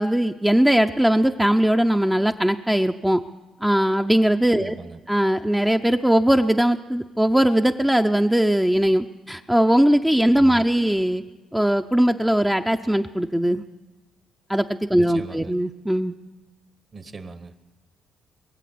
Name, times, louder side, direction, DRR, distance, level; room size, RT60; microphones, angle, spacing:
voice 1, 0.0-3.2 3.6-4.7 5.1-11.2 11.5-13.6 14.5-16.1, right 1 dB, 5° right, 6 dB, 0.5 m, -20 dB
voice 2, 4.6-5.0 10.3-10.6 15.0-15.5 16.9-17.6, right 3 dB, 40° right, 11 dB, 1.1 m, -39 dB
22.0 x 7.7 x 8.4 m, 1.2 s
cardioid pair, 90°, 0 cm